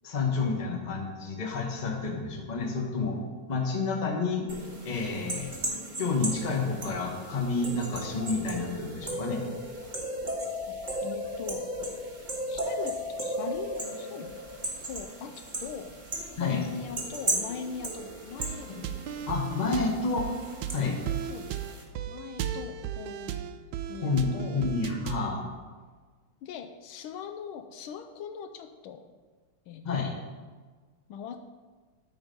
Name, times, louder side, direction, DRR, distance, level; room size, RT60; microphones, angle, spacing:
voice 1, 0.0-3.2 3.5-4.5 4.8-5.5 6.0-9.4 16.4-16.6 18.7-18.8 19.3-20.3 20.7-21.0 24.0-25.5 29.8-30.1, left 4 dB, 25° left, 1 dB, 1.1 m, -29 dB
sound 1, 4.5-21.8, right 1 dB, 25° right, 1.5 m, -36 dB
voice 2, 11.0-11.7 12.5-12.9 13.2-14.4 14.9-16.0 16.4-18.7 21.3-23.4 23.9-24.6 26.4-29.0 29.7-30.1 31.1-31.4, left 7 dB, 80° left, 7 dB, 1.4 m, -41 dB
sound 2, 18.4-25.4, right 9 dB, 75° right, 1.1 m, -36 dB
13.0 x 4.5 x 5.3 m, 1.4 s
omnidirectional pair, 2.3 m